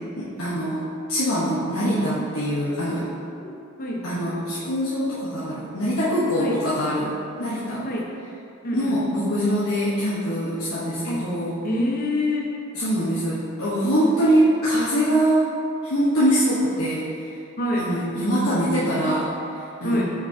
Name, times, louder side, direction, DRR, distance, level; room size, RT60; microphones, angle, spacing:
voice 1, 0.2-0.8 1.1-3.1 4.0-7.1 7.4-7.8 8.7-11.5 12.7-15.5 15.8-17.1 17.8-20.0, equal, 70° left, -10 dB, 1.2 m, -23 dB
voice 2, 3.4-4.1 6.4-6.6 7.8-8.1 8.6-9.0 11.1-11.3 11.6-12.5 14.0-14.1 17.6-17.9 19.8-20.1, left 1 dB, 40° left, -2 dB, 1.0 m, -26 dB
8.3 x 5.8 x 2.8 m, 2.5 s
head